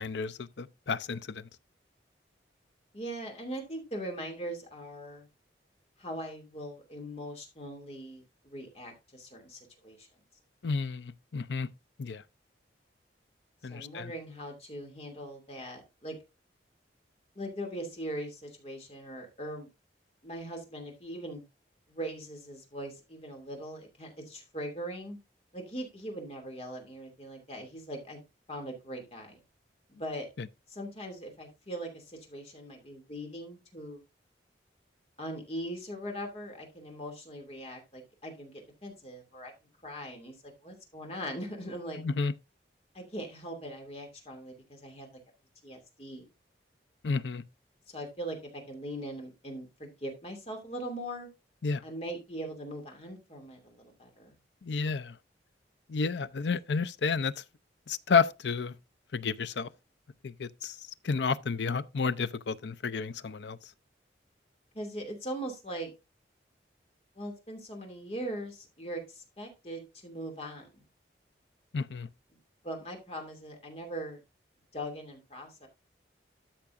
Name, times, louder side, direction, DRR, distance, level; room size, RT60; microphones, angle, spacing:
voice 1, 0.0-1.5 10.6-11.7 12.0-12.2 13.6-14.1 30.4-30.5 42.0-42.3 47.0-47.4 51.6-51.8 54.6-55.2 55.9-57.4 57.9-58.7 59.1-59.7 60.2-60.8 61.0-63.6 71.7-72.1, left 5 dB, 75° left, 0.5 m, -31 dB
voice 2, 2.9-5.3 6.0-10.1 13.7-16.2 17.3-19.7 20.2-21.4 21.9-25.2 25.5-28.2 28.5-29.4 29.9-30.3 30.7-34.0 35.2-39.5 39.8-42.0 42.9-45.2 45.6-46.3 47.9-51.3 51.8-54.4 64.7-65.9 67.1-70.8 72.6-74.2 74.7-75.7, right 1 dB, 35° left, 2.6 m, -40 dB
13.0 x 5.9 x 2.6 m
head